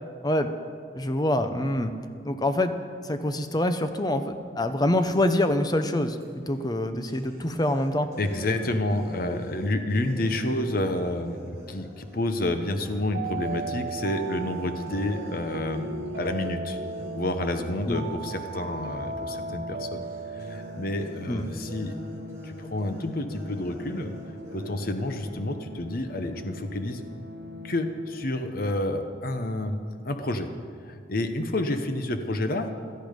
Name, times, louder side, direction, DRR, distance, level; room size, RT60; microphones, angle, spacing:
voice 1, 0.9-1.9 2.2-2.7 3.0-8.1 17.9-18.0 21.3-21.5, left 1 dB, 20° left, 9 dB, 0.7 m, -25 dB
sound 1, 6.2-6.3 7.1-13.1 13.4-13.6 13.9-25.1, equal, 15° right, 4.1 m, -45 dB
voice 2, 8.2-16.8 17.1-20.1 20.3-21.9 22.4-24.1 24.5-27.0 27.6-29.8 30.0-30.5 30.8-32.7, left 1 dB, 50° left, 7 dB, 1.0 m, -29 dB
sound 2, 13.0-28.7, right 2 dB, 70° right, 1.0 m, -38 dB
17.0 x 12.5 x 5.2 m, 2.2 s
head